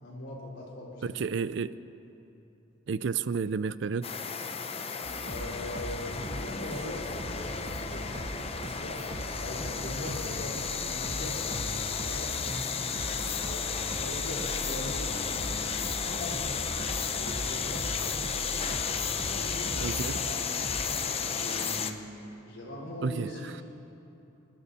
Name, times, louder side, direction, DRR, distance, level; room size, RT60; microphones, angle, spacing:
voice 1, 0.0-1.2 5.2-9.0 9.4-13.6 14.0-15.6 16.0-16.6 17.2-18.3 18.9-20.4 20.7-22.1 22.5-23.6, left 1 dB, 70° left, -5 dB, 4.1 m, -41 dB
voice 2, 1.0-1.8 2.9-4.1 19.8-20.2 23.0-23.6, right 5 dB, 60° right, 16 dB, 0.4 m, -31 dB
sound 1, 4.0-21.9, left 6 dB, 30° left, 0.6 m, -33 dB
sound 2, 5.0-20.9, right 1 dB, 35° right, 1.0 m, -40 dB
27.0 x 12.5 x 4.2 m, 2.9 s
head